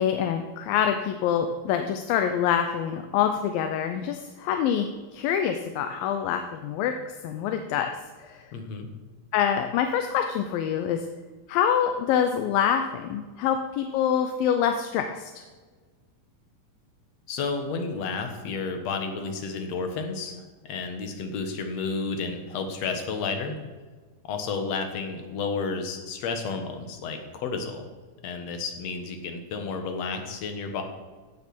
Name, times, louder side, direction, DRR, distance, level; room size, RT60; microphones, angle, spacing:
voice 1, 0.0-4.9 5.1-6.9 7.2-7.9 8.2-8.5 9.3-11.1 11.5-15.3, left 8 dB, 85° left, 6 dB, 2.5 m, -25 dB
voice 2, 8.5-8.9 17.3-23.6 24.2-27.9 28.2-30.8, left 4 dB, 60° left, 5 dB, 2.2 m, -31 dB
15.5 x 7.2 x 6.2 m, 1.4 s
omnidirectional pair, 4.0 m